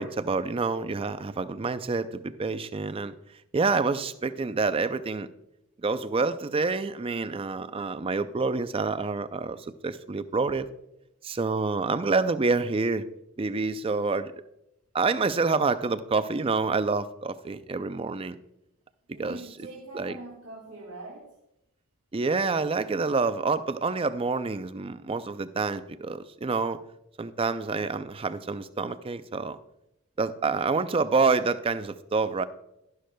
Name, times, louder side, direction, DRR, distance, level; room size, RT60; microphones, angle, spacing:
voice 1, 0.0-3.1 3.5-5.3 5.8-10.7 11.2-13.1 13.4-14.3 14.9-18.4 19.2-19.4 20.0-20.1 22.1-26.8 27.2-29.6 30.2-32.4, right 4 dB, 25° right, 12 dB, 0.4 m, -27 dB
voice 2, 19.1-21.4, right 2 dB, 85° right, -3 dB, 2.1 m, -44 dB
12.0 x 11.5 x 2.2 m, 0.85 s
head